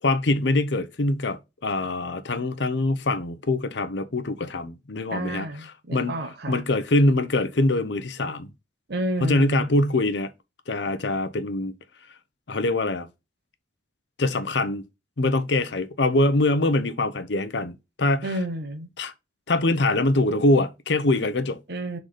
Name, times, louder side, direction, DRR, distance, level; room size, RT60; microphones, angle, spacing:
voice 1, 0.0-5.5 5.9-6.2 6.5-8.5 9.2-10.3 10.7-11.7 12.5-13.1 14.2-14.8 15.2-17.7 18.0-18.3 19.0-19.1 19.5-21.6, left 2 dB, 65° left, 0.8 m, -23 dB
voice 2, 5.1-6.6 8.9-9.7 18.2-18.9 21.7-22.0, right 1 dB, 60° right, 1.0 m, -30 dB
5.9 x 4.0 x 4.9 m
head